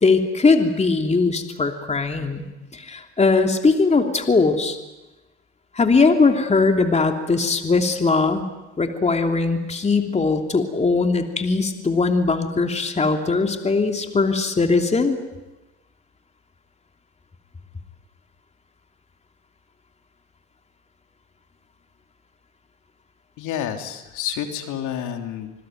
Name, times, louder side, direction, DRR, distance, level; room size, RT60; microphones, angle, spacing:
voice 1, 0.0-2.5 2.7-4.8 5.7-8.4 8.8-15.2, left 4 dB, 20° left, 5 dB, 3.0 m, -20 dB
voice 2, 23.4-25.5, left 9 dB, 60° left, 5 dB, 3.3 m, -29 dB
26.5 x 20.5 x 9.3 m, 1.0 s
hypercardioid pair, 85°, 34 cm